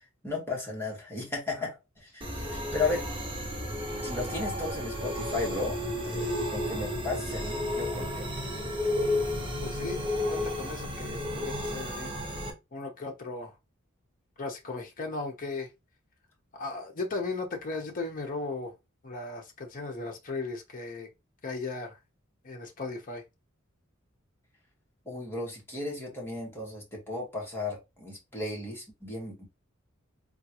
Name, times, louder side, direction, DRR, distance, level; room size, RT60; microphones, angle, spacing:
voice 1, 0.2-3.0 4.0-5.8 6.0-8.3 25.0-29.5, left 3 dB, 10° left, 1.3 m, -35 dB
sound 1, 2.2-12.5, left 1 dB, 25° right, 0.8 m, -32 dB
voice 2, 9.6-10.0 10.3-12.1 12.7-13.5 14.4-15.7 16.5-18.7 19.0-21.1 21.4-22.0 22.4-23.2, left 3 dB, 40° left, 0.8 m, -36 dB
3.7 x 2.3 x 2.9 m
head